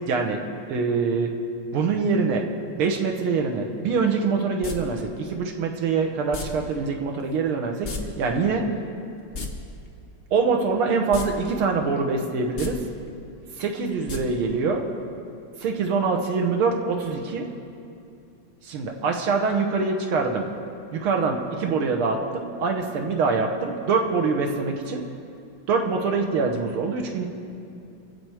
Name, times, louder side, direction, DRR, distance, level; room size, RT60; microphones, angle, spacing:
voice 1, 0.1-0.4 0.7-1.3 1.7-2.4 2.8-8.6 10.3-12.8 13.6-14.8 15.6-17.5 18.6-20.5 20.9-25.0 25.7-27.3, right 4 dB, 85° right, 3 dB, 2.0 m, -24 dB
sound 1, 4.6-4.8 6.3-6.5 7.8-8.0 8.3-8.4 9.2-9.5 11.1-11.3 11.6-11.7 12.5-12.7 14.1-14.2 14.5-14.6, left 4 dB, 40° left, 0.9 m, -32 dB
24.0 x 8.1 x 4.9 m, 2.6 s
omnidirectional pair, 2.3 m